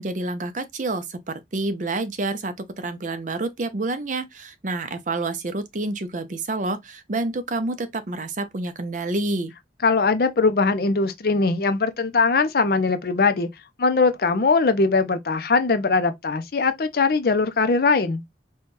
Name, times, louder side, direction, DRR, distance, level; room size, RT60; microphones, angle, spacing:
voice 1, 0.0-9.5, right 2 dB, 45° right, 0.6 m, -28 dB
voice 2, 9.8-13.5 13.8-18.2, left 4 dB, 55° left, 0.5 m, -21 dB
4.3 x 2.3 x 3.0 m
head